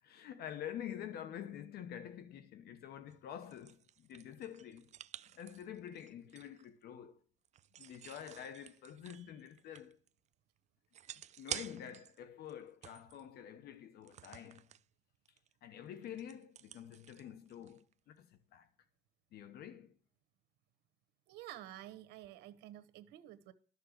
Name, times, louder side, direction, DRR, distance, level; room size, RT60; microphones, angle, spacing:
voice 1, 0.0-4.9 5.3-7.2 7.8-10.0 11.4-14.7 15.6-18.7 19.3-20.0, left 9 dB, 70° left, 1.0 m, -48 dB
sound 1, 3.1-6.7 7.4-10.1 10.3-10.4 10.9-12.2 12.5-13.3 14.0-14.8 15.3-15.5 15.8-17.9, right 10 dB, 45° right, 0.4 m, -50 dB
voice 2, 21.3-23.5, right 13 dB, 85° right, 1.2 m, -50 dB
12.5 x 6.6 x 6.6 m
cardioid pair, 110°, 17 cm